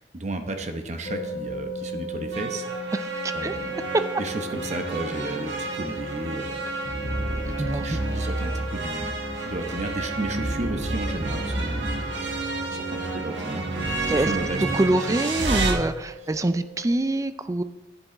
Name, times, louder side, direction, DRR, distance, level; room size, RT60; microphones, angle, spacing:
voice 1, 0.1-2.9 3.3-3.8 4.2-6.6 7.3-9.2 9.4-11.9 12.7-13.7 14.1-15.3, right 2 dB, 40° right, 5 dB, 0.9 m, -33 dB
sound 1, 1.0-17.1, right 1 dB, 50° left, 0.9 m, -38 dB
sound 2, 2.3-15.7, right 2 dB, 75° right, 1.3 m, -30 dB
voice 2, 14.7-17.6, right 2 dB, 20° right, 12 dB, 0.4 m, -25 dB
10.0 x 7.6 x 3.8 m, 1.1 s
head